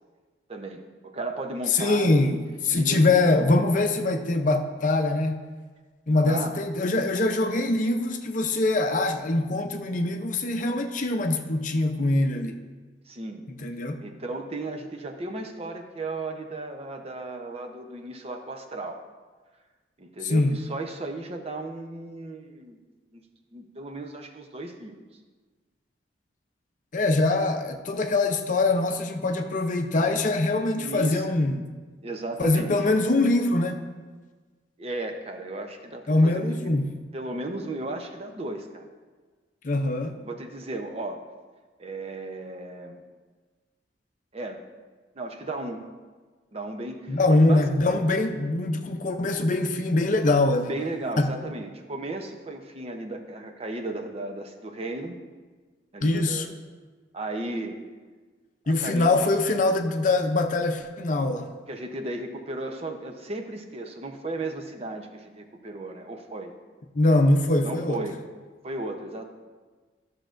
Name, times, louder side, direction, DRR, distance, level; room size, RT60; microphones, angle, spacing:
voice 1, 0.5-2.3 2.7-3.3 6.2-6.6 13.1-13.4 14.0-19.0 20.0-22.8 23.1-23.2 23.5-25.0 30.8-31.3 32.0-32.7 34.8-36.7 37.1-38.9 40.2-41.2 41.8-43.0 44.3-44.6 45.1-45.8 46.5-47.7 50.7-55.2 55.9-56.5 57.1-57.8 58.8-59.1 61.7-66.5 67.6-68.2 68.6-69.3, right 2 dB, 35° right, 4 dB, 0.7 m, -35 dB
voice 2, 1.7-5.4 6.1-12.6 13.5-14.0 20.2-20.6 26.9-31.6 32.4-33.8 36.1-36.9 39.6-40.2 47.1-50.7 51.2-51.3 56.0-56.4 58.7-61.5 66.9-68.0, left 2 dB, 45° left, 5 dB, 0.6 m, -23 dB
13.5 x 6.6 x 2.5 m, 1.4 s
head